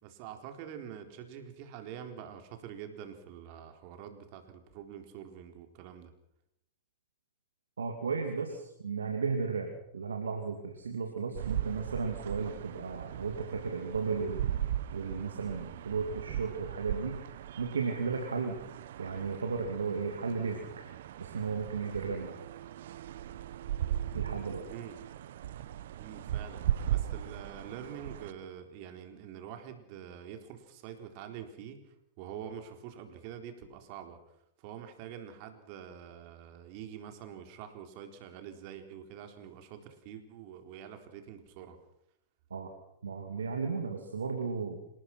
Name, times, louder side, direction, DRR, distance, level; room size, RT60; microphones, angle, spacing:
voice 1, 0.0-6.1 24.6-25.0 26.0-31.8 32.2-34.2 34.6-41.8, right 9 dB, 50° right, 6 dB, 4.0 m, -46 dB
voice 2, 7.8-14.5 14.9-17.2 17.6-18.6 19.0-20.6 21.2-22.4 24.1-24.6 42.5-42.7 43.0-44.8, right 5 dB, 80° right, 3 dB, 2.8 m, -34 dB
sound 1, 11.3-28.3, right 11 dB, 65° right, 1.1 m, -38 dB
27.0 x 19.0 x 6.1 m, 0.79 s
hypercardioid pair, 105°, 0 cm